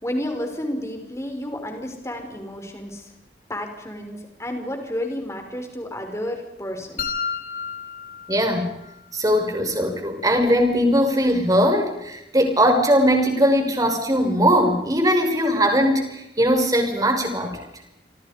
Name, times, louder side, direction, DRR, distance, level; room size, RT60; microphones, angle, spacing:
voice 1, 0.0-3.1 3.5-7.1, left 1 dB, 15° left, 4 dB, 5.6 m, -31 dB
sound 1, 7.0-9.0, left 6 dB, 45° left, 2.6 m, -31 dB
voice 2, 8.3-8.7 9.1-17.6, equal, 20° right, 4 dB, 5.9 m, -20 dB
27.5 x 27.0 x 5.3 m, 0.87 s
head